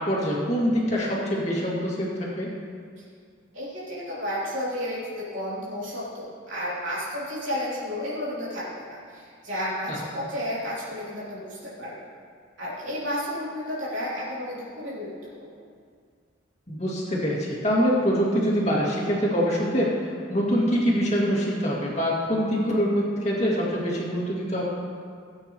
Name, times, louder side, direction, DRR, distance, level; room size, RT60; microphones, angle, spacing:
voice 1, 0.0-2.5 9.9-10.0 16.7-24.6, equal, 35° left, -5 dB, 2.4 m, -24 dB
voice 2, 3.5-12.1 12.6-15.6, equal, 75° right, -9 dB, 3.3 m, -32 dB
17.5 x 8.7 x 3.1 m, 2.2 s
head